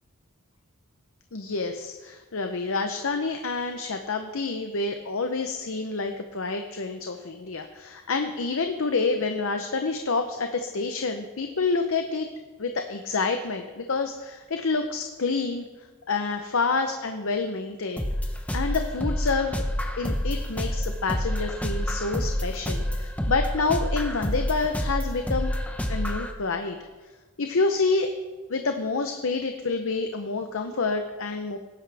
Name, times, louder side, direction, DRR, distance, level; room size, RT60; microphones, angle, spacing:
voice 1, 1.3-12.3 12.6-15.7 16.1-18.1 18.5-19.6 20.0-25.5 25.9-26.8 27.4-28.1 28.5-31.6, left 4 dB, 60° left, 6 dB, 0.7 m, -28 dB
sound 1, 18.0-26.3, equal, 5° left, 0.8 m, -28 dB
18.0 x 10.0 x 3.4 m, 1.4 s
head